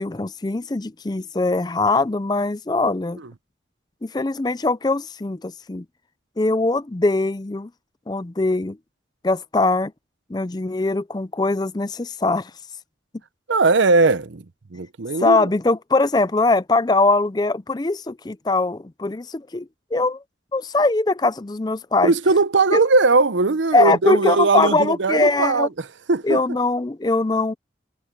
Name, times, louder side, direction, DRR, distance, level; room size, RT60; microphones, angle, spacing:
voice 1, 0.0-3.2 4.0-5.8 6.4-7.7 8.1-8.8 9.2-9.9 10.3-12.5 15.2-20.2 20.5-22.1 22.7-22.8 23.7-25.7 26.2-27.5, left 3 dB, 20° left, 0.4 m, -21 dB
voice 2, 13.5-14.4 14.7-15.5 22.0-26.4, right 3 dB, 80° right, 0.8 m, -19 dB
head